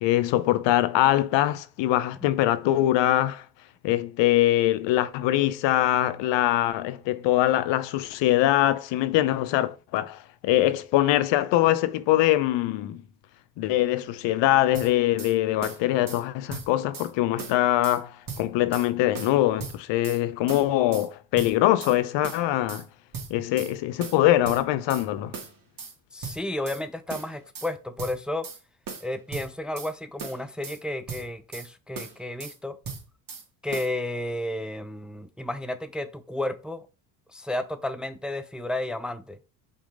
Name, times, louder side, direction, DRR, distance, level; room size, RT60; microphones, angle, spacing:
voice 1, 0.0-3.4 3.8-13.0 13.6-22.8 23.3-25.3, left 14 dB, 65° left, 0.8 m, -23 dB
sound 1, 14.7-15.3 15.6-16.2 16.5-17.1 17.4-18.0 18.3-18.9 19.1-20.2 20.5-21.1 21.4-22.0 22.2-22.8 23.1-23.7 24.0-25.1 25.3-25.9 26.2-26.8 27.1-27.7 28.0-28.6 28.9-29.9 30.2-30.8 31.1-31.7 31.9-32.6 32.8-33.4 33.7-33.9, right 5 dB, 45° right, 2.3 m, -38 dB
voice 2, 26.1-28.5 29.0-32.8 33.6-36.8 37.3-39.4, left 1 dB, ahead, 0.6 m, -32 dB
5.3 x 3.6 x 4.9 m
supercardioid pair, 75°, 47 cm